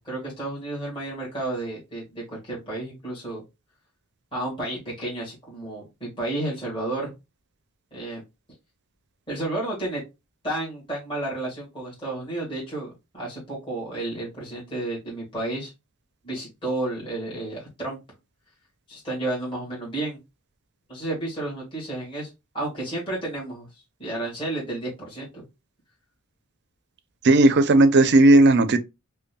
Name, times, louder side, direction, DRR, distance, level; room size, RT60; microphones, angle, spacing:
voice 1, 0.0-3.4 4.3-7.1 7.9-8.2 9.3-10.0 10.4-15.7 16.2-18.0 18.9-20.2 20.9-22.3 22.5-23.7 24.0-25.5, right 2 dB, 25° left, 1.6 m, -31 dB
voice 2, 27.2-28.8, right 2 dB, 50° right, 0.5 m, -15 dB
5.2 x 2.2 x 2.2 m
head